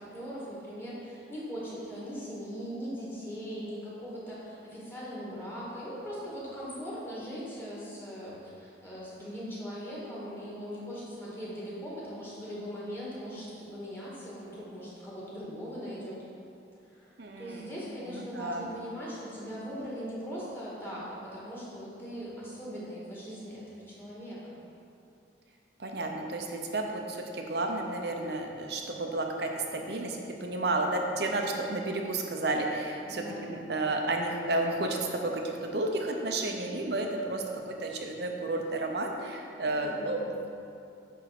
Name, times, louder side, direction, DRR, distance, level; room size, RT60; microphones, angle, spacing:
voice 1, 0.0-16.2 16.9-24.6 33.0-33.5 39.6-40.5, equal, 10° left, -8 dB, 2.0 m, -40 dB
voice 2, 17.2-17.7 18.1-18.7 25.8-40.5, right 2 dB, 60° right, 2 dB, 0.8 m, -32 dB
9.2 x 3.7 x 5.9 m, 2.6 s
head